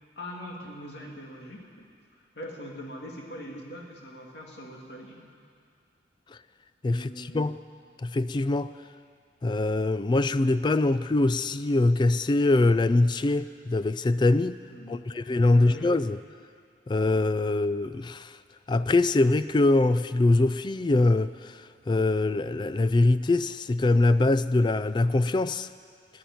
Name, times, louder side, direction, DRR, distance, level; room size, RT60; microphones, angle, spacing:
voice 1, 0.2-1.9 2.2-5.3 6.9-7.5 14.7-15.1 15.5-15.9, equal, 65° left, -1 dB, 2.6 m, -42 dB
voice 2, 6.8-7.6 8.0-8.7 9.4-14.6 14.9-16.2 16.9-18.3 18.7-25.7, left 2 dB, 25° left, 14 dB, 0.3 m, -23 dB
14.5 x 10.0 x 9.5 m, 2.3 s
head